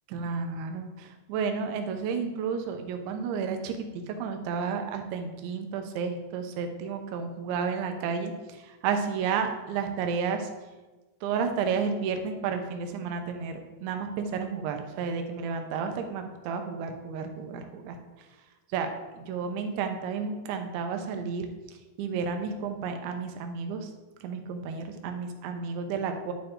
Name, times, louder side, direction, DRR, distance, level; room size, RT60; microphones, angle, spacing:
voice 1, 0.1-3.8 4.1-10.5 11.2-18.0 18.7-18.9 19.1-21.5 22.0-23.9 24.2-26.3, right 6 dB, 85° right, 6 dB, 3.3 m, -31 dB
10.0 x 9.3 x 3.8 m, 1.2 s
omnidirectional pair, 5.2 m